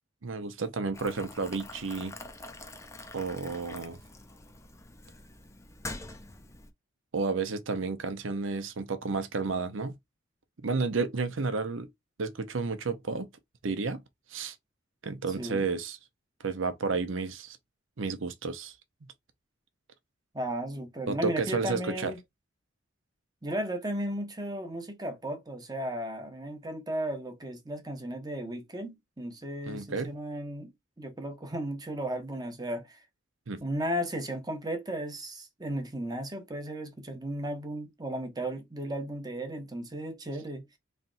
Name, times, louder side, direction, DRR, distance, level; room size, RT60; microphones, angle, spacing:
voice 1, 0.2-2.1 3.1-4.0 7.1-10.0 10.6-11.9 12.2-13.3 13.6-14.0 14.3-14.5 15.0-16.0 16.4-17.6 18.0-18.7 21.1-22.1 29.7-30.1 33.5-33.6, right 4 dB, 70° right, 0.8 m, -31 dB
Boiling, 0.9-6.7, left 2 dB, 15° left, 0.6 m, -45 dB
voice 2, 20.3-22.2 23.4-30.7 31.0-33.0 33.6-40.6, right 1 dB, 20° right, 1.0 m, -35 dB
4.1 x 3.3 x 2.5 m
head